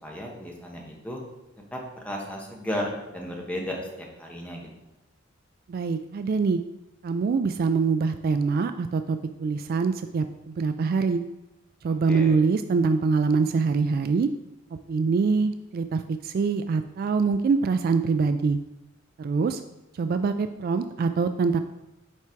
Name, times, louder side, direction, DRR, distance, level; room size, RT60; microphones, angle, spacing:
voice 1, 0.0-1.2 1.7-4.7 12.1-12.4, equal, 5° left, -1 dB, 1.2 m, -34 dB
voice 2, 5.7-6.6 7.0-11.2 11.8-14.3 14.9-18.6 19.2-19.6 19.9-21.6, right 4 dB, 50° right, 9 dB, 0.3 m, -24 dB
5.9 x 4.6 x 4.5 m, 0.94 s
head